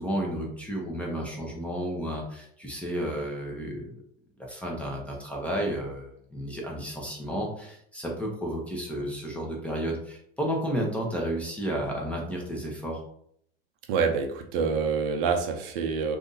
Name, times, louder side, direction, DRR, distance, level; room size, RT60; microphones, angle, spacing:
voice 1, 0.0-3.9 4.4-13.0, equal, 5° left, -2 dB, 0.8 m, -32 dB
voice 2, 13.9-16.2, right 5 dB, 60° right, 4 dB, 0.7 m, -26 dB
2.6 x 2.6 x 3.8 m, 0.67 s
supercardioid pair, 120°, 31 cm